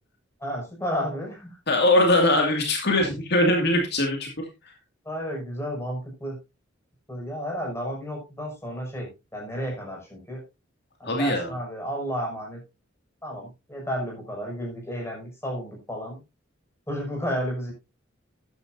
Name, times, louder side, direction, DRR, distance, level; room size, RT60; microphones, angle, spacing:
voice 1, 0.4-1.6 5.0-6.4 7.1-10.4 11.0-12.6 13.2-16.2 16.9-17.7, equal, 15° left, -1 dB, 6.2 m, -32 dB
voice 2, 1.7-4.3 11.0-11.5, left 1 dB, 60° left, 2 dB, 2.3 m, -21 dB
12.5 x 11.0 x 2.7 m, 0.25 s
head